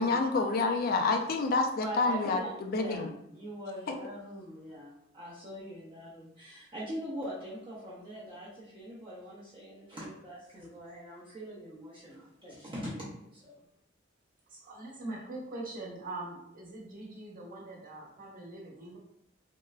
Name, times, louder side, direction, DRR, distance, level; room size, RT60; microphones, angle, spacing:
voice 1, 0.0-3.1 3.9-4.0, left 3 dB, 50° left, 4 dB, 0.4 m, -28 dB
voice 2, 1.8-13.6, equal, 25° right, -7 dB, 0.6 m, -42 dB
voice 3, 14.5-19.0, right 2 dB, 45° right, -4 dB, 0.9 m, -42 dB
3.6 x 2.0 x 2.3 m, 0.75 s
head